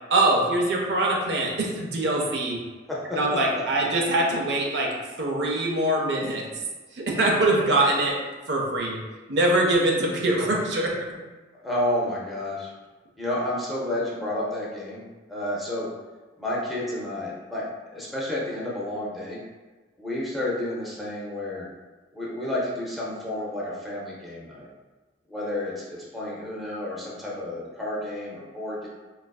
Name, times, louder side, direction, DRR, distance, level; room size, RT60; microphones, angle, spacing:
voice 1, 0.1-2.6 3.1-6.5 6.9-8.2 8.5-9.0 9.3-11.0, right 1 dB, 65° right, -1 dB, 0.5 m, -23 dB
voice 2, 11.6-12.7 13.2-15.0 15.3-15.9 16.4-17.6 17.9-19.4 20.0-21.7 22.1-24.7 25.3-28.9, left 1 dB, ahead, -6 dB, 0.6 m, -30 dB
4.2 x 2.4 x 2.3 m, 1.3 s
head